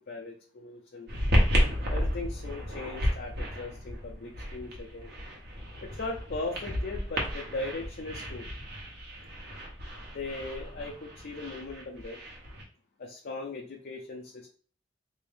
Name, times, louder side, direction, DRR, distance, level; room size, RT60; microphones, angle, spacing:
voice 1, 0.1-1.1 1.9-5.1 5.8-8.5 10.1-12.2 13.0-14.5, left 3 dB, 50° left, 0 dB, 0.6 m, -38 dB
sound 1, 1.1-12.6, equal, 55° right, 1.0 m, -32 dB
3.6 x 2.6 x 3.4 m, 0.43 s
head